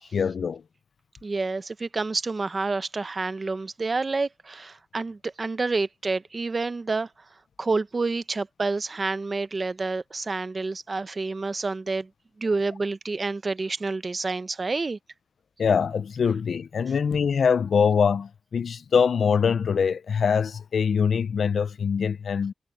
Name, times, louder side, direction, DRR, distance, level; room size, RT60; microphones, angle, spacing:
voice 1, 0.1-0.6 15.6-22.5, left 6 dB, 65° left, 0.4 m, -23 dB
voice 2, 1.2-7.1 7.6-12.1 12.4-15.0, right 3 dB, 30° right, 0.6 m, -28 dB
wide cardioid pair, 165°, 0 cm